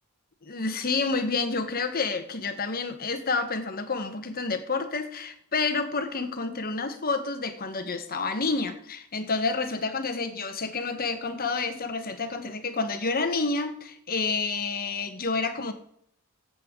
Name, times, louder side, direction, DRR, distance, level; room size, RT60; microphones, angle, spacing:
voice 1, 0.4-15.7, left 4 dB, 45° left, 8 dB, 1.3 m, -29 dB
15.0 x 7.8 x 3.8 m, 0.69 s
head